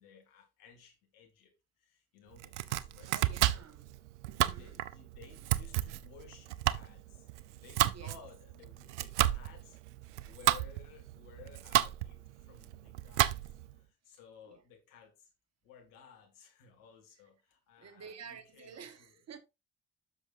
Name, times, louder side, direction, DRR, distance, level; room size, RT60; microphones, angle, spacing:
voice 1, 0.0-1.5 1.8-3.6 4.4-15.3 15.6-19.2, left 7 dB, 70° left, 2.4 m, -58 dB
Domestic sounds home sounds, 2.3-13.7, right 14 dB, 85° right, 0.5 m, -32 dB
voice 2, 3.1-3.9 4.3-4.8 7.8-8.2 14.5-14.6 17.8-19.4, right 7 dB, 50° right, 1.4 m, -51 dB
10.5 x 6.7 x 2.6 m
hypercardioid pair, 45°, 34 cm